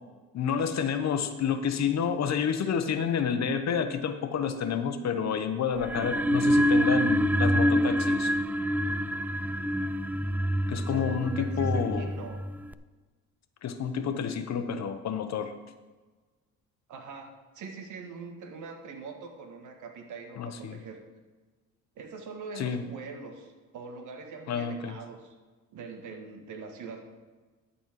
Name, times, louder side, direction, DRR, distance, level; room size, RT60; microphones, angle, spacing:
voice 1, 0.3-8.3 10.7-12.1 13.6-15.5 20.4-20.8 22.6-22.9 24.5-24.9, left 7 dB, 60° left, 9 dB, 1.0 m, -29 dB
sound 1, 5.8-12.7, equal, 5° right, 0.3 m, -26 dB
voice 2, 10.8-12.4 16.9-21.0 22.0-25.4 25.7-27.0, right 4 dB, 80° right, 4 dB, 1.7 m, -43 dB
12.5 x 4.3 x 7.5 m, 1.3 s
cardioid pair, 90°, 30 cm